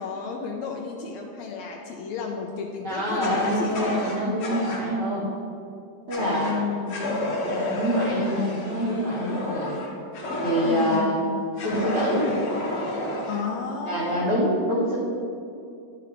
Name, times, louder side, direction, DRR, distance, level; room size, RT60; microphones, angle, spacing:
voice 1, 0.0-3.8 6.2-7.0 10.6-11.3 13.3-14.4, left 6 dB, 80° left, 0 dB, 1.7 m, -32 dB
voice 2, 2.8-5.3 6.1-7.0 7.3-9.8 10.4-11.2 11.6-12.3 13.8-15.0, equal, 65° right, -8 dB, 1.0 m, -26 dB
Fire, 3.2-4.8 6.1-6.6 6.9-11.0 11.6-13.4, left 1 dB, 65° left, 2.1 m, -30 dB
11.0 x 5.0 x 3.0 m, 2.5 s
omnidirectional pair, 3.3 m